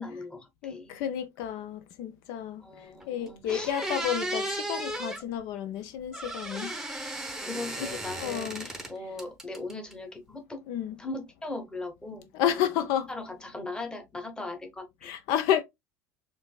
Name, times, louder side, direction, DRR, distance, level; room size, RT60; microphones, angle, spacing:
voice 1, 0.0-1.0 2.6-3.7 7.4-10.6 11.0-12.3 12.5-12.7 13.1-15.1, left 2 dB, 10° left, 1.0 m, -39 dB
voice 2, 0.6-2.6 3.1-6.7 8.2-8.7 10.7-11.0 12.3-13.1 15.0-15.6, left 10 dB, 50° left, 0.5 m, -30 dB
sound 1, 3.0-3.1 3.5-5.2 6.1-8.9 9.2-9.9, right 1 dB, 5° right, 0.8 m, -35 dB
4.4 x 2.7 x 2.2 m
figure-of-eight pair, 70°, 8 cm